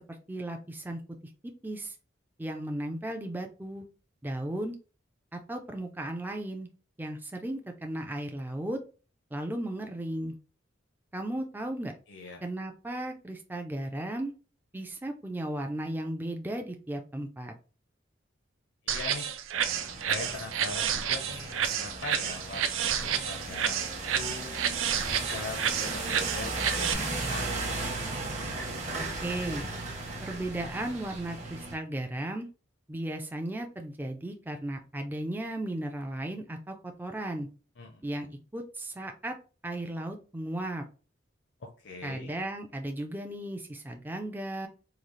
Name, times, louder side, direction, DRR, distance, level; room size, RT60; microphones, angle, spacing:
voice 1, 0.1-1.0 1.6-1.9 2.4-3.9 4.2-4.8 5.3-6.7 7.0-8.8 9.3-10.3 11.1-11.9 12.4-14.3 14.7-17.5 29.0-29.7 30.2-32.5 32.9-37.5 38.0-39.3 39.6-40.8 42.0-44.7, right 1 dB, 10° right, 4 dB, 0.3 m, -35 dB
voice 2, 12.1-12.4 18.8-19.3 20.1-24.5 25.0-27.5 37.8-38.0 41.6-42.3, left 3 dB, 60° left, 2 dB, 0.6 m, -41 dB
sound 1, 18.9-26.9, right 8 dB, 90° right, 0.4 m, -30 dB
sound 2, 19.5-31.7, right 2 dB, 35° right, 0.8 m, -36 dB
3.8 x 2.4 x 3.1 m, 0.35 s
head